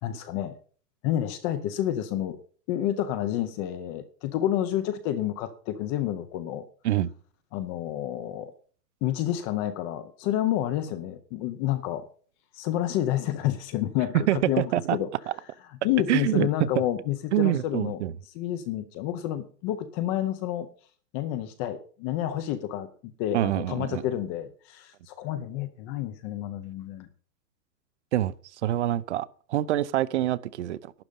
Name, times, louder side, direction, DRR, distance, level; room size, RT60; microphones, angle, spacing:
voice 1, 0.0-0.5 1.0-2.4 2.7-6.6 7.5-8.5 9.0-12.0 12.5-14.6 14.9-15.1 15.8-18.0 18.3-20.7 21.1-27.1, left 12 dB, 15° left, 0.6 m, -29 dB
voice 2, 14.3-15.0 15.3-15.4 16.1-16.7 17.3-18.1 23.3-24.0 28.1-28.3 28.6-30.9, right 13 dB, 45° right, 0.8 m, -26 dB
12.0 x 9.7 x 5.3 m
hypercardioid pair, 155°, 48 cm